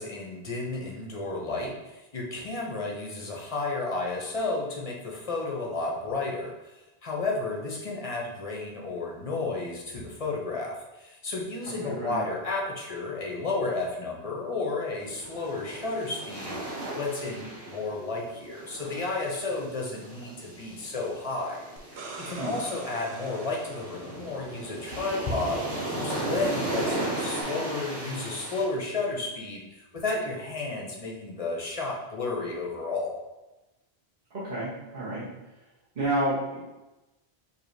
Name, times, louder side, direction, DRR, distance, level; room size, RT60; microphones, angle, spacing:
voice 1, 0.0-21.6 21.9-25.6 25.9-33.2, left 3 dB, 40° left, -2 dB, 0.6 m, -32 dB
voice 2, 11.8-12.2 22.3-22.6 34.3-35.3 35.9-36.6, right 1 dB, 45° right, -9 dB, 1.1 m, -30 dB
sound 1, 15.0-28.7, right 1 dB, 70° right, 1.1 m, -36 dB
sound 2, 21.8-24.6 27.4-27.5, right 3 dB, 90° right, 0.9 m, -44 dB
4.7 x 2.7 x 2.6 m, 1.0 s
omnidirectional pair, 1.1 m